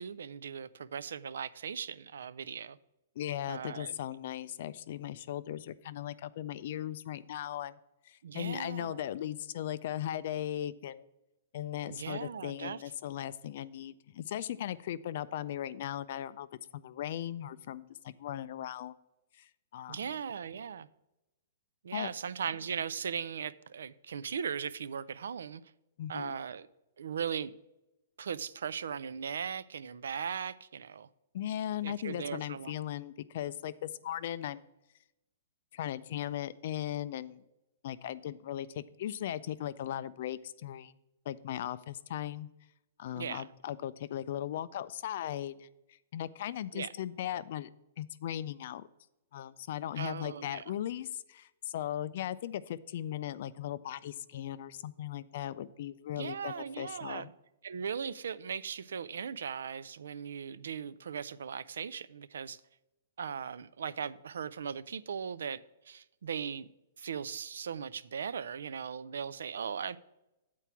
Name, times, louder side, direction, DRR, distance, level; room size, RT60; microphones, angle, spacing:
voice 1, 0.0-2.8 3.5-3.9 8.2-9.0 11.9-12.8 19.9-20.9 21.8-25.6 26.1-26.7 27.0-27.5 28.2-31.1 31.8-32.7 43.2-43.5 46.7-46.9 50.0-50.7 56.2-57.3 57.6-62.6 63.2-65.6 65.9-66.7 67.0-70.0, right 7 dB, 90° right, 0.4 m, -38 dB
voice 2, 3.2-7.8 8.1-11.1 11.5-16.5 16.7-18.9 19.4-20.1 21.9-22.1 26.0-26.4 31.3-34.6 35.7-37.4 37.8-40.9 41.3-42.5 43.0-45.7 46.1-47.7 48.0-48.9 49.3-57.3, left 11 dB, 45° left, 0.3 m, -38 dB
8.4 x 4.5 x 5.9 m
hypercardioid pair, 175°, 0 cm